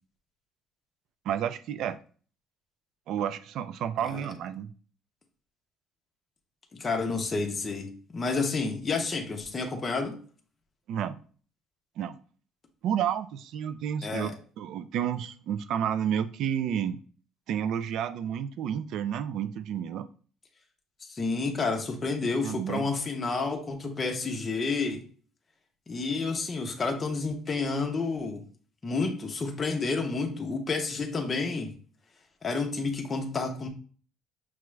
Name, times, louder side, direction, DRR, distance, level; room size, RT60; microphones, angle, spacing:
voice 1, 1.3-2.0 3.1-4.7 10.9-11.2 12.0-12.2 12.8-14.3 14.6-17.0 17.5-20.1 22.4-22.9, right 9 dB, 55° right, 13 dB, 0.3 m, -30 dB
voice 2, 6.7-10.2 14.0-14.3 21.0-25.0 25.9-28.4 28.8-31.7 32.4-33.7, left 4 dB, 20° left, 3 dB, 0.6 m, -30 dB
6.0 x 2.3 x 3.1 m, 0.42 s
cardioid pair, 170°, 0 cm